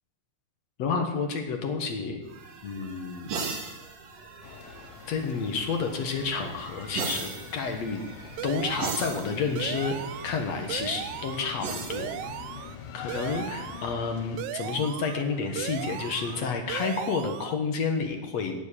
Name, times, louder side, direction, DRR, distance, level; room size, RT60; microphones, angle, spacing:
voice 1, 0.8-2.2 2.6-3.3 5.1-8.0 8.4-10.0 10.2-12.1 12.9-18.6, left 5 dB, 60° left, 5 dB, 2.4 m, -30 dB
sound 1, 2.2-13.4 15.0-16.5, right 5 dB, 60° right, 2.6 m, -40 dB
sound 2, 4.4-14.4, left 8 dB, 85° left, 2.6 m, -44 dB
sound 3, 8.4-9.2 9.6-10.4 10.7-11.5 11.9-12.8 13.1-13.9 14.4-15.2 15.6-16.4 16.7-17.5, right 12 dB, 75° right, 1.9 m, -37 dB
16.5 x 7.4 x 8.6 m, 0.99 s
omnidirectional pair, 3.7 m